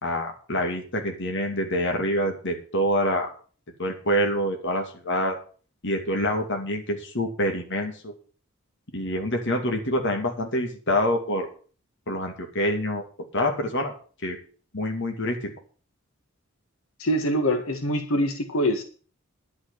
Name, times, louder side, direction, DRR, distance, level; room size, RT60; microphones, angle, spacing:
voice 1, 0.0-3.3 3.8-5.4 5.8-8.1 8.9-11.5 12.1-13.0 13.3-13.9 14.2-14.4 14.7-15.5, equal, 60° left, 3 dB, 2.6 m, -26 dB
voice 2, 17.0-18.8, equal, 85° left, 6 dB, 1.7 m, -24 dB
11.0 x 6.1 x 9.1 m, 0.40 s
head